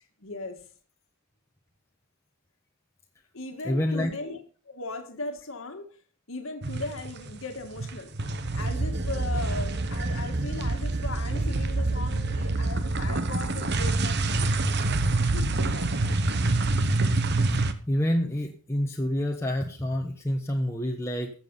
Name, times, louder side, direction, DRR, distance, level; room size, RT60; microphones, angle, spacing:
voice 1, 0.2-0.6 3.3-4.4 4.7-5.9 6.3-8.1 8.5-14.2 15.2-16.2, left 3 dB, 65° left, 1.8 m, -38 dB
voice 2, 3.6-4.1 17.5-21.3, left 1 dB, 10° left, 1.2 m, -28 dB
sound 1, 6.6-7.4 7.7-17.7, right 2 dB, 50° right, 1.0 m, -26 dB
14.0 x 7.5 x 5.5 m
head